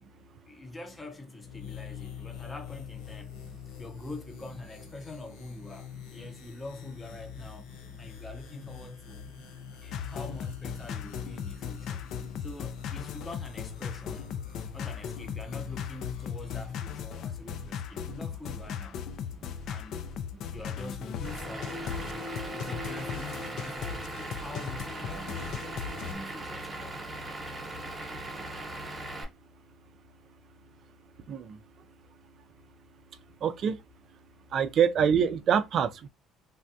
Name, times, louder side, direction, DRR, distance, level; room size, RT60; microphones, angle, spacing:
voice 1, 0.5-3.3 3.8-7.7 8.0-9.3 9.8-12.1 12.4-14.3 14.7-19.0 19.6-20.1 20.5-25.7 25.9-27.0 27.7-27.8, left 2 dB, 15° left, 0.6 m, -44 dB
sound 1, 1.4-16.8, left 9 dB, 85° left, 0.7 m, -46 dB
voice 2, 9.4-9.8 14.6-14.7 19.4-19.5 20.3-20.4 28.4-28.5 31.3-31.6 33.4-33.8 34.5-36.1, right 7 dB, 45° right, 0.4 m, -27 dB
sound 2, 9.9-26.2, left 7 dB, 60° left, 0.3 m, -37 dB
Vehicle / Engine, 21.2-29.2, right 1 dB, 15° right, 0.8 m, -39 dB
3.4 x 2.2 x 2.6 m
cardioid pair, 140°, 0 cm